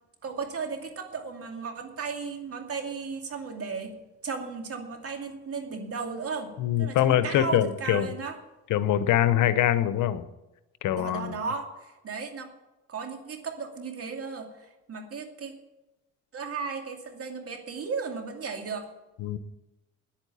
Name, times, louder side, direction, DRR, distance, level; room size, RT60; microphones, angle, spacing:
voice 1, 0.2-4.0 4.2-6.5 6.8-8.3 10.9-12.5 12.9-15.5 16.3-18.9, right 5 dB, 50° right, 4 dB, 2.5 m, -35 dB
voice 2, 6.6-8.1 8.7-10.2 10.8-11.4 19.2-19.4, left 11 dB, 85° left, 13 dB, 1.0 m, -24 dB
10.0 x 9.0 x 8.6 m, 1.0 s
cardioid pair, 85°, 30 cm